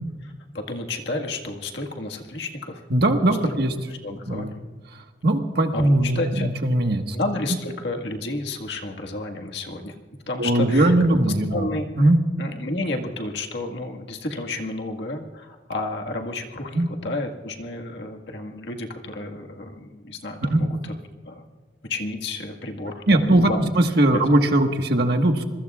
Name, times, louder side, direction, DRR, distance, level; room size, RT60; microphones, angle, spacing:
voice 1, 0.5-2.8 3.4-4.6 5.7-6.5 7.1-9.9 10.3-10.9 11.5-11.8 12.4-20.9 21.2-21.4 21.9-23.2 23.5-23.6 24.1-24.2, left 2 dB, 65° left, 2 dB, 1.7 m, -31 dB
voice 2, 2.9-3.7 4.3-4.5 4.9-7.1 10.4-11.7 12.0-12.2 16.7-16.9 20.5-20.6 23.1-25.4, right 1 dB, 60° right, 4 dB, 1.5 m, -20 dB
26.5 x 22.0 x 2.4 m, 1.3 s
head